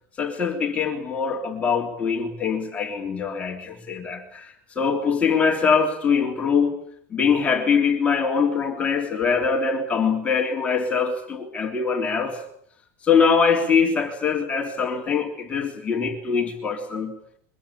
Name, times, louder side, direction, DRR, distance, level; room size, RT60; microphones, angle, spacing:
voice 1, 0.2-6.8 7.1-12.4 13.0-17.2, left 5 dB, 15° left, 1 dB, 3.5 m, -23 dB
23.5 x 22.0 x 8.8 m, 0.66 s
supercardioid pair, 165°, 8 cm